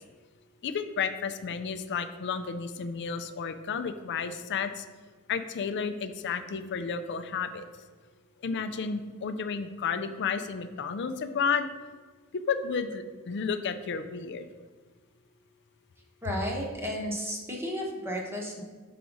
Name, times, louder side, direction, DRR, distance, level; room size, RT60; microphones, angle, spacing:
voice 1, 0.6-4.8 5.3-7.6 8.4-11.7 12.3-14.5, left 6 dB, 55° left, 10 dB, 0.4 m, -32 dB
voice 2, 16.2-18.6, equal, 10° right, -1 dB, 1.0 m, -33 dB
5.7 x 4.9 x 3.9 m, 1.5 s
head